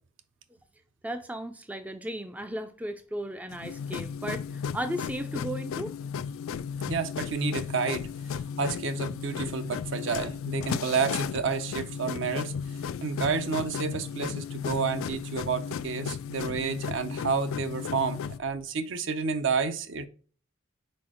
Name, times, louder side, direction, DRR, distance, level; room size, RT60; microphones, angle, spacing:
voice 1, 1.0-6.0, right 1 dB, 5° right, 0.3 m, -35 dB
sound 1, 3.5-18.4, left 7 dB, 75° left, 0.3 m, -34 dB
voice 2, 6.9-8.1 8.6-12.5 13.0-20.1, right 5 dB, 60° right, 0.6 m, -30 dB
4.7 x 4.3 x 4.9 m
head